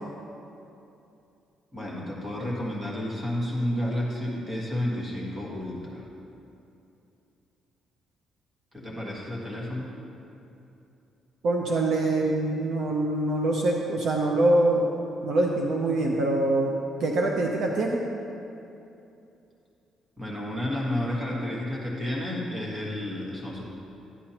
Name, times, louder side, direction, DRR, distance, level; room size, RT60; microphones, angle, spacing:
voice 1, 1.7-6.1 8.7-9.9 20.2-23.6, left 1 dB, 15° right, -5 dB, 1.6 m, -31 dB
voice 2, 11.4-15.0 15.2-16.7 17.0-18.0, right 2 dB, 50° right, 0 dB, 0.6 m, -24 dB
11.0 x 9.9 x 2.9 m, 2.7 s
cardioid pair, 175°, 0 cm